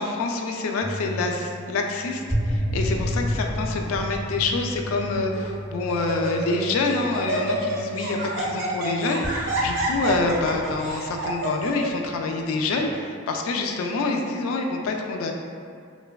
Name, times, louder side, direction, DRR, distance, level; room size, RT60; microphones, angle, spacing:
voice 1, 0.0-15.3, left 3 dB, 70° left, 2 dB, 0.3 m, -26 dB
sound 1, 0.8-8.8 9.2-11.9 12.7-13.0, equal, 10° left, 0.5 m, -32 dB
Laughter, 3.6-4.0 4.7-4.8 5.3-5.6 5.9-6.6 6.9-11.9, right 1 dB, 60° right, 0.5 m, -29 dB
3.1 x 2.1 x 2.3 m, 2.2 s
head